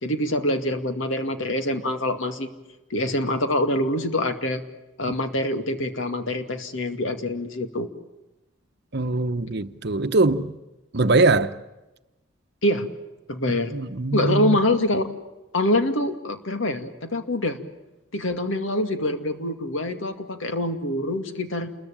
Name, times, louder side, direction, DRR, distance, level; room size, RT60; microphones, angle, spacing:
voice 1, 0.0-2.5 2.9-4.6 5.0-7.9 12.6-12.9 13.3-13.7 14.1-15.0 15.5-17.6 18.1-21.7, left 1 dB, 70° left, 2.3 m, -25 dB
voice 2, 8.9-10.5 10.9-11.5 13.7-14.6, right 3 dB, 55° right, 1.0 m, -22 dB
29.0 x 21.5 x 8.9 m
head